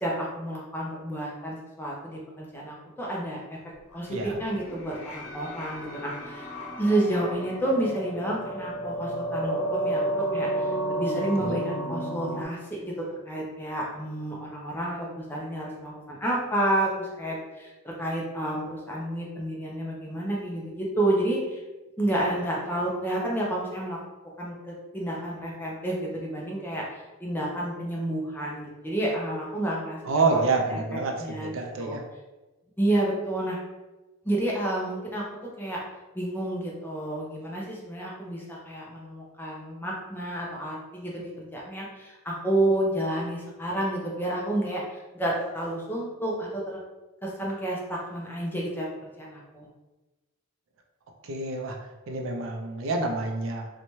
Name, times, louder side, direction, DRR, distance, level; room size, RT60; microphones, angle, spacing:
voice 1, 0.0-3.6 3.9-6.5 6.8-12.9 13.3-21.6 22.0-24.0 24.4-30.0 30.3-30.4 30.7-30.8 31.2-31.5 31.8-32.0 32.8-33.6 34.2-35.2 35.6-35.8 36.1-44.8 45.1-46.8 47.2-49.7, right 1 dB, 10° left, -3 dB, 0.4 m, -30 dB
sound 1, 3.9-12.5, right 1 dB, 85° left, 0.7 m, -32 dB
voice 2, 4.1-4.4 11.4-11.6 30.0-32.0 51.2-53.7, right 3 dB, 65° right, 2 dB, 0.4 m, -28 dB
2.7 x 2.2 x 3.0 m, 1.1 s
head